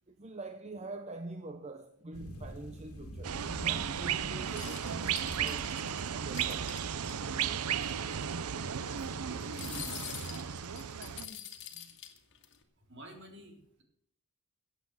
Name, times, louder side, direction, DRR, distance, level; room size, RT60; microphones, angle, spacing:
voice 1, 0.1-5.7 6.1-6.9 11.8-12.0, right 2 dB, 30° right, 0.8 m, -45 dB
sound 1, 2.1-11.2, equal, 80° left, 1.7 m, -50 dB
sound 2, 3.2-11.2, right 8 dB, 80° right, 0.6 m, -35 dB
sound 3, 4.5-7.1 7.5-7.6 7.8-8.0 9.4-12.6, left 10 dB, 55° left, 1.9 m, -45 dB
voice 2, 8.8-10.3 11.0-11.4 12.9-13.8, equal, 55° right, 3.5 m, -50 dB
15.5 x 8.3 x 7.5 m
head